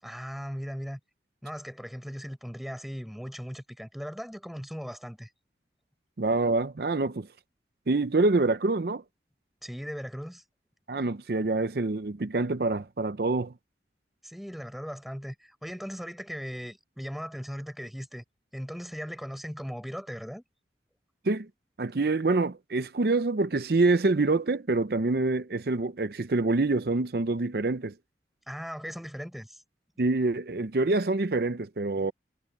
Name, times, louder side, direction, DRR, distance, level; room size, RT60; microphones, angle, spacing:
voice 1, 0.0-1.0 1.4-5.3 9.6-10.4 14.2-18.2 18.5-20.4 28.5-29.6, equal, ahead, 6.0 m, -38 dB
voice 2, 6.2-7.3 7.9-9.0 10.9-13.5 21.2-21.5 21.8-27.9 30.0-32.1, right 3 dB, 60° right, 0.6 m, -26 dB
head